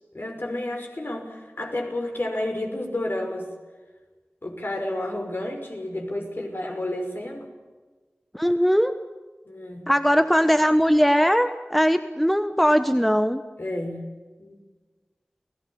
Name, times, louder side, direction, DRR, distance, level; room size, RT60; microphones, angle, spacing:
voice 1, 0.1-3.5 4.4-7.5 9.5-9.9 13.6-14.1 14.4-14.6, left 1 dB, 55° left, 3 dB, 5.8 m, -31 dB
voice 2, 8.3-8.9 9.9-13.4, equal, ahead, 9 dB, 1.2 m, -20 dB
30.0 x 18.0 x 7.2 m, 1.3 s
wide cardioid pair, 50°, 4 cm